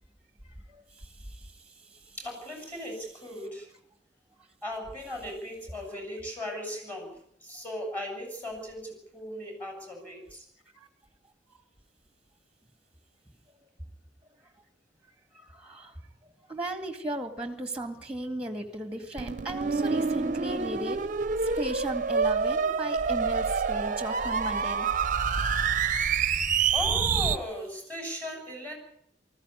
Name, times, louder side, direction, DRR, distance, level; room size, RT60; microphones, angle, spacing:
voice 1, 0.7-1.1 1.4-1.5 10.7-10.9 15.3-15.9 16.5-21.0 21.4-24.9 25.4-25.7, right 1 dB, 5° right, 8 dB, 2.1 m, -36 dB
voice 2, 2.2-3.7 4.6-10.4 26.7-28.7, left 1 dB, 10° left, 2 dB, 7.3 m, -37 dB
sound 1, 19.2-27.4, right 5 dB, 45° right, 0.8 m, -27 dB
19.5 x 15.0 x 9.8 m, 0.69 s
head